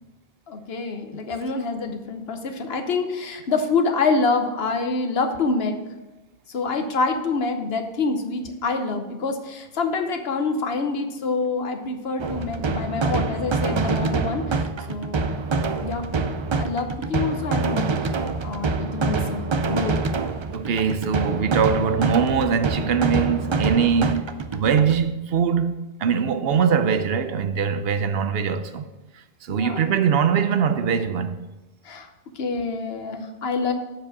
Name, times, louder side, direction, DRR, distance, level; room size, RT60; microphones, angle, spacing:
voice 1, 0.5-5.8 6.5-15.4 15.8-16.1 16.6-18.2 18.4-20.0 29.5-29.9 31.8-33.7, left 4 dB, 75° left, 1.1 m, -26 dB
sound 1, 12.2-25.0, right 4 dB, 45° right, 0.3 m, -26 dB
voice 2, 20.5-24.3 24.5-25.7 26.0-28.9 29.5-31.4, right 6 dB, 75° right, 0.8 m, -22 dB
7.5 x 4.8 x 7.1 m
omnidirectional pair, 1.0 m